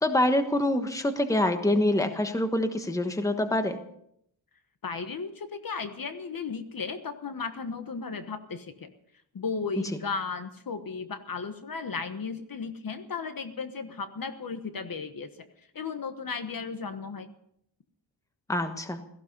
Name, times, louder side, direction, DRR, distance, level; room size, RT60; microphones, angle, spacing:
voice 1, 0.0-3.8 18.5-19.0, left 1 dB, 5° left, 7 dB, 1.2 m, -25 dB
voice 2, 4.8-8.9 9.3-15.5 15.7-17.3, left 5 dB, 45° left, 9 dB, 1.3 m, -35 dB
17.0 x 15.5 x 5.4 m, 0.73 s
wide cardioid pair, 160°, 46 cm